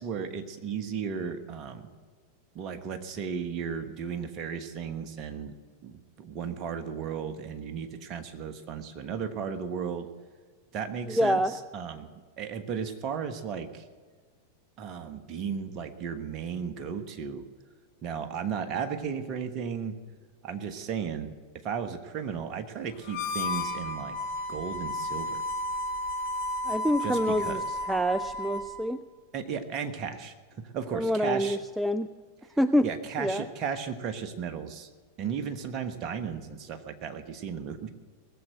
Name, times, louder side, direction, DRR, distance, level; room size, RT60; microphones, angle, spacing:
voice 1, 0.0-1.9 2.5-5.5 5.8-10.1 10.7-13.8 14.8-17.5 18.0-20.0 20.4-21.4 21.6-24.2 24.5-25.4 27.0-27.8 29.3-31.6 32.8-34.9 35.2-37.9, right 7 dB, 35° right, 8 dB, 1.2 m, -35 dB
voice 2, 11.1-11.5 26.7-27.6 27.9-29.0 30.9-32.1 32.6-32.9 33.2-33.5, equal, 5° right, 11 dB, 0.4 m, -26 dB
Harmonica, 23.0-28.7, left 2 dB, 50° left, 1.7 m, -33 dB
19.0 x 7.6 x 7.9 m, 1.5 s
figure-of-eight pair, 90°, 0 cm